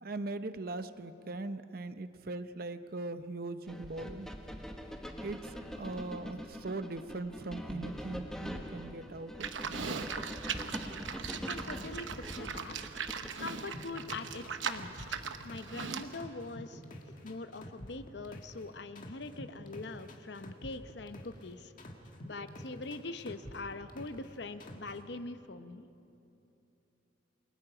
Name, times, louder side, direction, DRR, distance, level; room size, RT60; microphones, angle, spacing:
voice 1, 0.0-4.3 5.2-9.5 9.8-9.9, right 2 dB, 50° right, 11 dB, 0.7 m, -40 dB
sound 1, 3.7-13.6, equal, 5° left, 1.2 m, -43 dB
Livestock farm animals working animals, 9.4-16.1, right 6 dB, 75° right, 0.9 m, -39 dB
voice 2, 11.3-12.8 13.4-15.2 15.4-16.8 17.2-21.7 22.2-25.9, left 3 dB, 60° left, 10 dB, 0.7 m, -43 dB
sound 2, 13.7-15.8 16.1-18.6 19.0-21.4 21.8-24.3 24.6-25.0, left 1 dB, 45° left, 1.8 m, -47 dB
28.5 x 22.0 x 5.0 m, 2.9 s
head